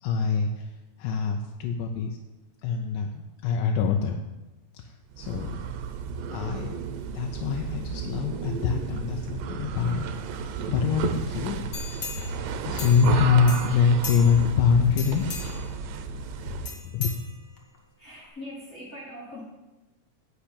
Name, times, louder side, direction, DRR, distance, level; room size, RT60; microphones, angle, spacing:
voice 1, 0.0-0.7 1.0-2.2 2.6-4.2 4.8-5.6 6.3-6.7 7.1-10.2 10.6-11.7 12.2-15.3 16.4-16.6 16.9-17.2, left 6 dB, 75° left, 3 dB, 2.2 m, -24 dB
sound 1, 5.1-16.9, right 6 dB, 80° right, 2.3 m, -34 dB
sound 2, 11.7-13.2 13.5-14.5 14.9-15.7 16.6-17.8 18.2-18.3, left 5 dB, 50° left, 2.1 m, -38 dB
voice 2, 18.0-19.4, left 1 dB, 25° left, -8 dB, 3.1 m, -41 dB
10.0 x 6.0 x 8.6 m, 1.1 s
omnidirectional pair, 4.0 m